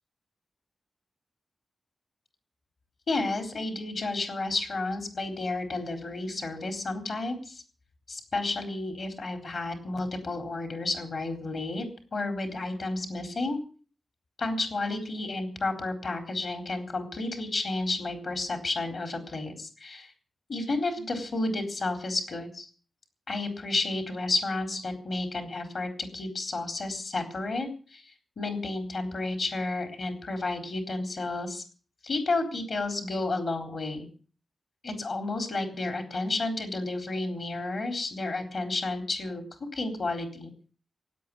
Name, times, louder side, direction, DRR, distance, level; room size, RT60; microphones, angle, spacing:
voice 1, 3.1-7.6 8.1-11.9 12.1-13.6 14.4-20.1 20.5-22.7 23.3-31.6 32.0-34.1 34.8-39.4 39.7-40.5, left 2 dB, 55° left, 6 dB, 3.9 m, -31 dB
17.0 x 9.2 x 8.6 m, 0.40 s
wide cardioid pair, 105°, 0 cm